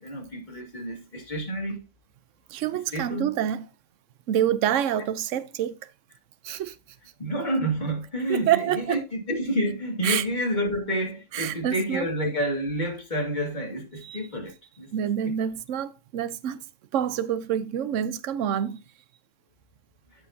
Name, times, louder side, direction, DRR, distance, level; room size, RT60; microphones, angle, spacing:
voice 1, 0.0-1.8 2.9-3.3 7.2-14.9 15.2-15.3, equal, 35° left, 2.4 m, -29 dB
voice 2, 2.5-3.7 4.3-5.8 6.4-6.8 8.3-9.0 10.0-10.3 11.3-12.1 14.0-14.2 14.9-16.6 16.9-18.8, right 10 dB, 75° right, 1.0 m, -27 dB
13.5 x 5.0 x 2.7 m
omnidirectional pair, 1.3 m